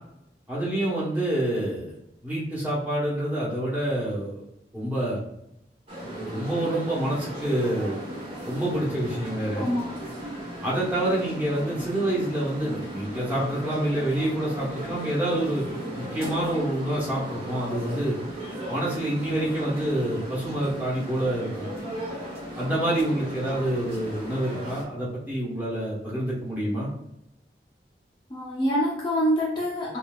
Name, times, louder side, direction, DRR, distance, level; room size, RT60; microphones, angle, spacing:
voice 1, 0.5-1.9 2.2-4.4 4.7-5.2 6.0-8.0 8.4-9.7 10.6-15.6 16.0-18.1 18.7-21.7 22.6-26.9, right 1 dB, 10° right, -6 dB, 1.1 m, -27 dB
sound 1, 5.9-24.8, equal, 35° right, 1.1 m, -36 dB
voice 2, 28.3-30.0, equal, 25° left, -5 dB, 0.8 m, -25 dB
5.5 x 2.6 x 2.4 m, 0.82 s
head